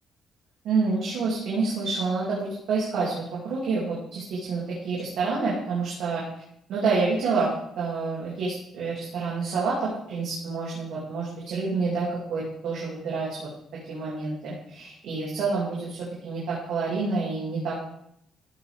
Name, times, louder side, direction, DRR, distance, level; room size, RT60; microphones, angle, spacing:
voice 1, 0.6-6.2 6.7-7.5 7.8-13.5 13.9-16.0 16.2-17.8, right 4 dB, 80° right, -7 dB, 2.7 m, -28 dB
14.0 x 5.2 x 3.6 m, 0.74 s
cardioid pair, 90°, 0 cm